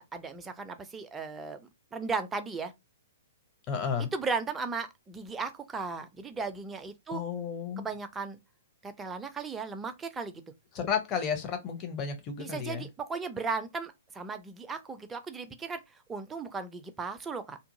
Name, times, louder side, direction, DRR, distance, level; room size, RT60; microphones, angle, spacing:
voice 1, 0.0-2.7 4.0-7.2 7.8-8.4 8.8-10.4 12.4-17.6, right 4 dB, 10° right, 0.4 m, -36 dB
voice 2, 3.7-4.1 7.1-7.9 10.7-12.8, left 7 dB, 25° left, 0.7 m, -32 dB
2.7 x 2.5 x 2.6 m
figure-of-eight pair, 115°, 0 cm